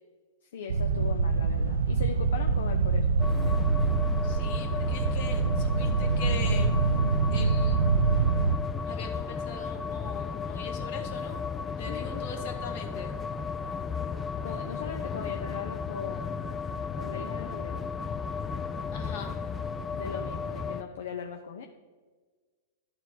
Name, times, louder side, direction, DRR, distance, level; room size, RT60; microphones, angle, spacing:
voice 1, 0.4-3.6 11.9-12.2 14.4-16.5 17.0-17.9 19.9-21.7, left 6 dB, 70° left, 4 dB, 0.6 m, -39 dB
sound 1, 0.7-8.6, right 4 dB, 75° right, 0.5 m, -25 dB
sound 2, 3.2-20.8, left 5 dB, 20° left, 0.4 m, -34 dB
voice 2, 4.2-6.7 7.3-7.8 8.9-11.4 11.8-13.1 18.9-19.4, left 6 dB, 55° left, 2 dB, 1.6 m, -41 dB
12.5 x 4.5 x 4.0 m, 1.4 s
hypercardioid pair, 105°, 0 cm